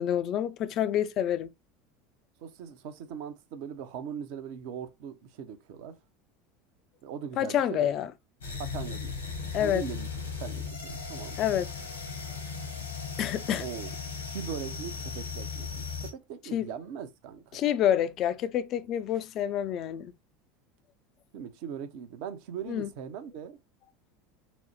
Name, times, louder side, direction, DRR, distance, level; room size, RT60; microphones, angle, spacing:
voice 1, 0.0-1.5 7.4-8.1 9.5-9.8 11.4-11.7 13.2-13.6 16.5-16.7 17.5-20.1 22.7-22.9, left 10 dB, 45° left, 0.4 m, -28 dB
voice 2, 2.4-6.0 7.0-7.9 8.6-9.2 9.6-11.4 13.6-13.9 14.3-17.7 21.3-23.6, right 8 dB, 55° right, 0.6 m, -40 dB
sound 1, 8.4-16.1, left 5 dB, 80° left, 1.3 m, -37 dB
4.0 x 2.0 x 3.1 m
figure-of-eight pair, 75°, 0 cm